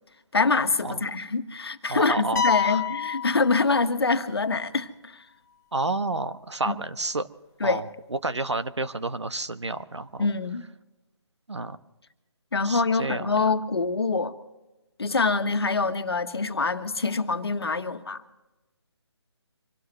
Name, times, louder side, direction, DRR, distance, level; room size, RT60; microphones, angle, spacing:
voice 1, 0.3-5.2 6.6-6.7 7.6-7.8 10.2-10.6 12.5-14.3 15.0-18.2, left 4 dB, 60° left, 1.4 m, -25 dB
voice 2, 1.9-2.8 5.7-7.3 7.6-7.8 8.1-10.3 11.5-11.8 12.6-13.5, right 2 dB, 80° right, 1.2 m, -30 dB
sound 1, 2.4-4.3, left 7 dB, 40° left, 1.2 m, -28 dB
25.5 x 17.5 x 3.2 m
figure-of-eight pair, 150°, 15 cm